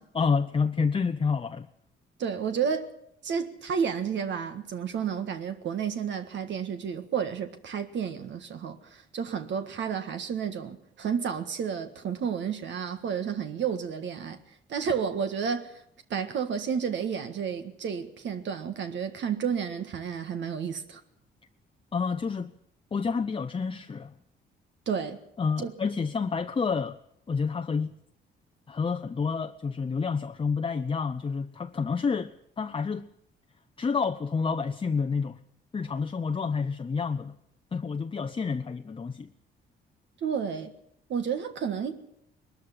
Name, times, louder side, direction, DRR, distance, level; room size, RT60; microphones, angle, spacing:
voice 1, 0.1-1.7 21.9-22.5 22.9-24.1 25.4-27.0 27.3-27.9 28.7-33.1 33.8-35.4 35.7-37.3 37.7-39.3, left 5 dB, 25° left, 0.7 m, -29 dB
voice 2, 2.2-2.9 3.2-14.4 14.7-15.8 16.1-21.0 24.8-25.2 25.6-25.7 40.2-40.7 41.1-42.0, right 7 dB, 65° right, 1.7 m, -31 dB
20.5 x 13.0 x 9.9 m
cardioid pair, 90°, 20 cm